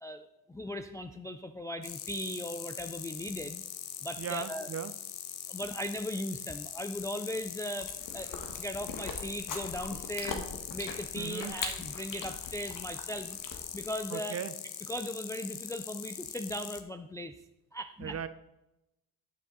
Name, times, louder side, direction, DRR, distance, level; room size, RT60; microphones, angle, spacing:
voice 1, 0.0-3.6 4.0-4.7 5.5-13.4 13.7-14.4 14.9-17.3 17.7-18.2, equal, 10° left, 7 dB, 0.3 m, -38 dB
sound 1, 1.8-16.8, left 10 dB, 65° left, 1.0 m, -42 dB
voice 2, 4.2-4.9 11.1-11.5 14.1-14.5 18.0-18.3, right 8 dB, 35° right, 12 dB, 0.6 m, -37 dB
Chewing mastication, 7.8-13.9, left 4 dB, 50° left, 1.6 m, -41 dB
11.0 x 6.3 x 3.9 m, 0.92 s
cardioid pair, 100°, 41 cm